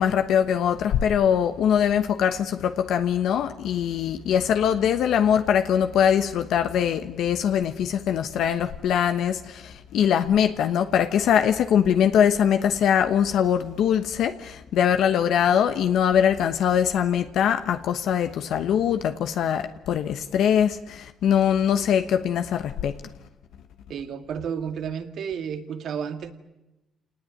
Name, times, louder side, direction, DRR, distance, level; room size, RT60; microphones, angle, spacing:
voice 1, 0.0-22.9, left 9 dB, 80° left, 1.1 m, -22 dB
voice 2, 23.9-26.3, right 7 dB, 70° right, 2.1 m, -31 dB
27.0 x 19.0 x 9.7 m
cardioid pair, 90°, 0 cm